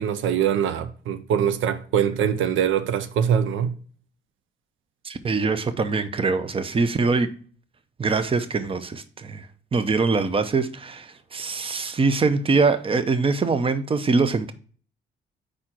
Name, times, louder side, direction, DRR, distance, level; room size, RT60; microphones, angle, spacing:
voice 1, 0.0-3.7, right 8 dB, 80° right, 0.6 m, -23 dB
voice 2, 5.0-7.3 8.0-9.5 9.7-14.5, right 4 dB, 30° right, 0.7 m, -23 dB
5.0 x 4.2 x 5.9 m
cardioid pair, 90°, 20 cm